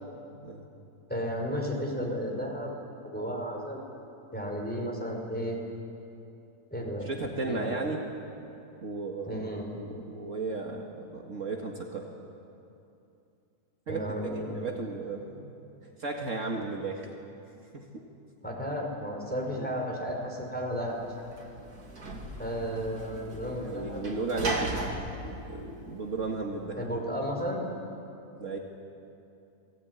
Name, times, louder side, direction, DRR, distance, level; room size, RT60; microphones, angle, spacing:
voice 1, 1.1-2.7 3.1-3.8 4.3-5.6 6.7-7.1 7.4-7.8 9.3-9.7 13.9-14.5 18.4-21.0 22.4-24.0 26.8-27.7, equal, 5° left, -1 dB, 5.2 m, -33 dB
voice 2, 7.0-8.0 8.8-9.4 9.7-12.1 13.9-15.5 15.8-17.1 17.7-18.1 19.6-19.7 23.5-24.8 25.2-26.9 28.4-28.6, right 3 dB, 55° right, 1 dB, 2.2 m, -35 dB
Sliding door / Slam, 20.7-26.5, right 2 dB, 75° right, 3.2 m, -37 dB
28.0 x 20.5 x 9.7 m, 2.7 s
omnidirectional pair, 1.6 m